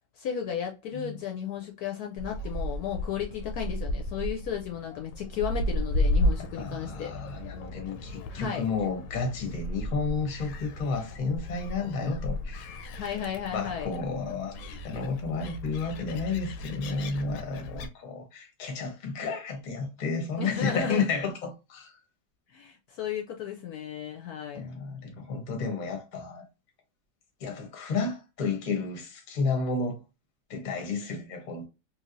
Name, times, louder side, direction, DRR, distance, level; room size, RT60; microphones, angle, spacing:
voice 1, 0.2-7.1 8.3-8.7 13.0-13.9 20.4-21.1 22.5-24.6, left 9 dB, 70° left, 1.0 m, -34 dB
Gull seagull, 2.2-17.9, left 1 dB, 90° left, 1.2 m, -34 dB
voice 2, 6.6-12.7 13.5-21.9 24.5-26.5 27.4-30.0 30.5-31.7, left 4 dB, 40° left, 0.7 m, -32 dB
3.2 x 2.6 x 2.5 m
omnidirectional pair, 1.9 m